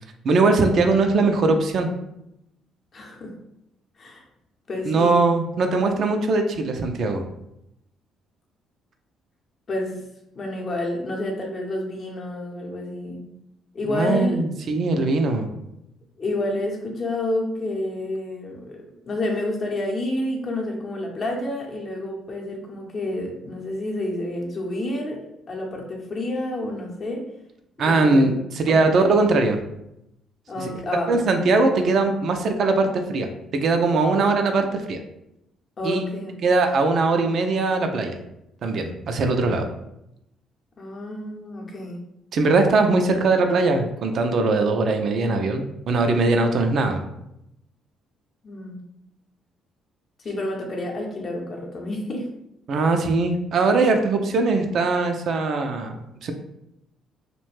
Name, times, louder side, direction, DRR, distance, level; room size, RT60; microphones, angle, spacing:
voice 1, 0.2-1.9 4.9-7.2 13.9-15.5 27.8-29.6 30.6-30.7 31.1-35.0 35.8-36.0 36.4-38.1 38.6-39.7 42.3-47.0 52.7-56.3, right 3 dB, 60° right, 5 dB, 0.4 m, -21 dB
voice 2, 2.9-3.4 4.0-4.2 4.7-5.4 9.7-10.0 10.3-13.3 13.7-14.4 16.2-27.3 27.8-28.3 28.7-29.1 30.5-31.2 34.1-34.3 35.8-36.4 40.8-42.0 48.4-48.8 50.2-52.3, left 1 dB, 45° left, 0 dB, 0.7 m, -29 dB
2.4 x 2.1 x 3.1 m, 0.83 s
hypercardioid pair, 50°, 0 cm